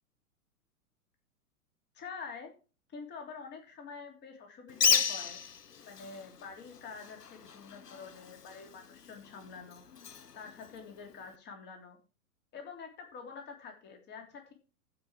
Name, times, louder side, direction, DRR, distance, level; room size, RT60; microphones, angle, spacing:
voice 1, 1.9-2.5 2.9-5.4 5.8-9.8 10.3-12.0 12.5-14.5, left 5 dB, 20° left, 3 dB, 3.1 m, -47 dB
Bird, 4.7-11.4, left 7 dB, 80° left, 1.0 m, -35 dB
15.0 x 5.4 x 4.7 m, 0.34 s
figure-of-eight pair, 110°, 47 cm